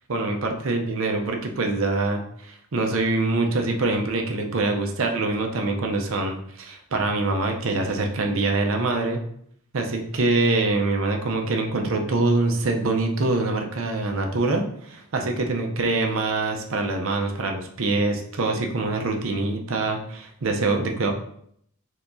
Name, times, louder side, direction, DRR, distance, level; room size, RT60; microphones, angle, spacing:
voice 1, 0.1-9.2 9.7-21.1, right 2 dB, 70° right, 3 dB, 0.6 m, -24 dB
4.5 x 2.9 x 2.6 m, 0.68 s
head